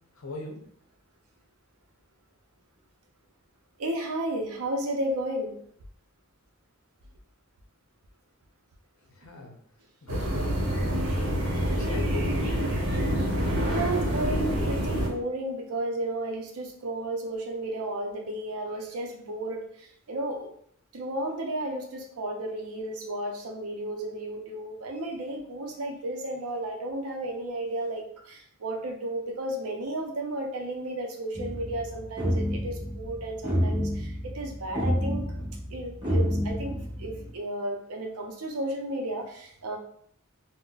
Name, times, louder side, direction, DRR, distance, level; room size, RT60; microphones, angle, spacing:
voice 1, 0.2-0.6 9.1-9.6 10.0-10.6 11.1-12.5, left 2 dB, 75° left, 1 dB, 0.7 m, -39 dB
voice 2, 3.8-5.5 13.7-20.5 20.9-35.3 35.7-39.8, right 1 dB, 85° right, 2 dB, 0.5 m, -33 dB
sound 1, 10.1-15.1, equal, 65° right, 0.9 m, -27 dB
sound 2, 31.3-37.3, equal, 25° right, 0.9 m, -29 dB
3.8 x 2.1 x 2.3 m, 0.65 s
head